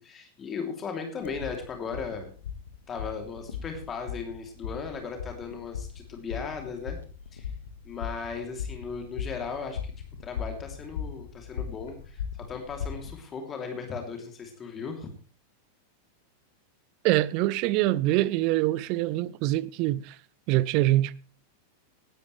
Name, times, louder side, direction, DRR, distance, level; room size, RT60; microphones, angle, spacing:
voice 1, 0.0-2.3 2.9-7.0 7.3-7.5 7.8-9.9 10.2-15.1, left 5 dB, 25° left, 2.9 m, -37 dB
sound 1, 1.2-13.1, left 7 dB, 65° left, 1.6 m, -38 dB
voice 2, 17.0-20.2 20.5-21.1, right 16 dB, 45° right, 0.6 m, -24 dB
18.5 x 12.5 x 3.3 m
figure-of-eight pair, 90°, 0 cm